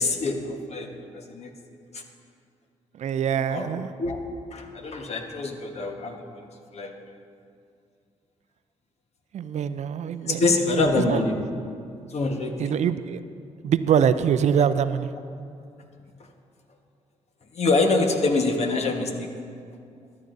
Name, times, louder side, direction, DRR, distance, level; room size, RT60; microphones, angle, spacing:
voice 1, 0.0-2.0 3.3-4.2 4.5-7.2 10.3-11.5 12.1-12.7 14.5-14.7 17.5-19.3, left 3 dB, 55° left, 3 dB, 1.3 m, -26 dB
voice 2, 3.0-3.9 9.3-10.4 11.1-11.2 12.6-13.2 13.6-15.1, right 8 dB, 60° right, 13 dB, 0.4 m, -23 dB
13.5 x 11.0 x 2.6 m, 2.3 s
supercardioid pair, 65°, 13 cm